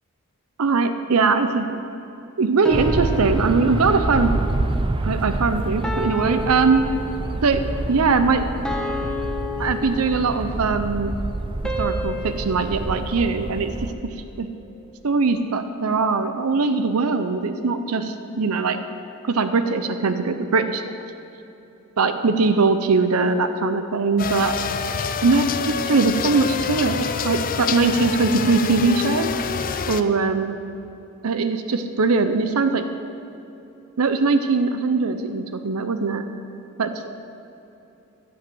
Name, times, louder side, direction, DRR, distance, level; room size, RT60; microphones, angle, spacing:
voice 1, 0.6-1.8 2.4-4.3 5.0-6.8 7.4-7.6 7.9-8.4 9.6-11.1 11.8-13.7 14.4-14.5 15.0-18.8 19.3-20.8 22.0-24.5 25.2-29.3 29.9-30.6 31.2-32.8 34.0-36.2 36.8-37.1, right 4 dB, 80° right, 9 dB, 0.6 m, -21 dB
sound 1, 2.6-4.2 5.8-7.5 8.6-10.6 11.6-14.0, left 1 dB, 5° left, 1.0 m, -31 dB
sound 2, 2.7-13.9, right 2 dB, 25° right, 0.5 m, -27 dB
sound 3, 24.2-30.0, left 6 dB, 40° left, 0.5 m, -26 dB
15.5 x 5.8 x 7.7 m, 3.0 s
head